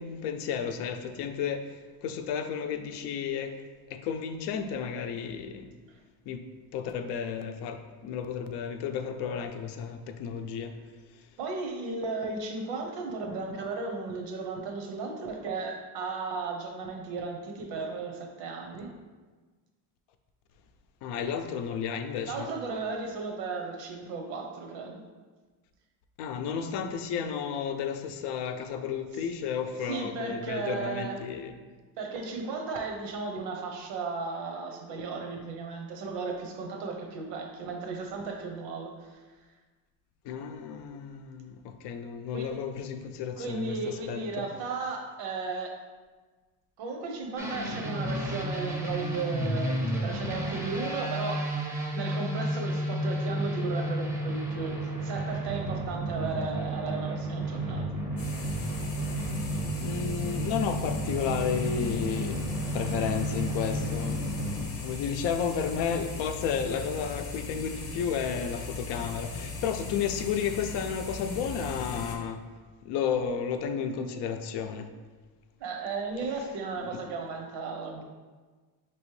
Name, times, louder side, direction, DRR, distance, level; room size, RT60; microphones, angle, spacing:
voice 1, 0.0-3.6 3.9-5.7 6.3-6.4 6.7-10.7 21.0-22.5 26.2-31.5 40.2-44.4 59.5-64.4 64.8-72.4 72.8-74.9, left 7 dB, 75° left, 7 dB, 0.5 m, -32 dB
voice 2, 11.4-18.9 22.3-25.0 29.1-29.2 29.9-31.2 32.0-39.2 42.3-42.6 43.4-45.8 46.8-51.5 51.9-57.9 58.2-58.6 75.6-78.0, right 4 dB, 85° right, 3 dB, 0.8 m, -35 dB
sound 1, 47.4-64.6, right 1 dB, 5° right, 0.5 m, -32 dB
sound 2, 58.2-72.2, left 4 dB, 35° left, 0.7 m, -38 dB
5.1 x 3.0 x 3.1 m, 1.4 s
cardioid pair, 135°, 41 cm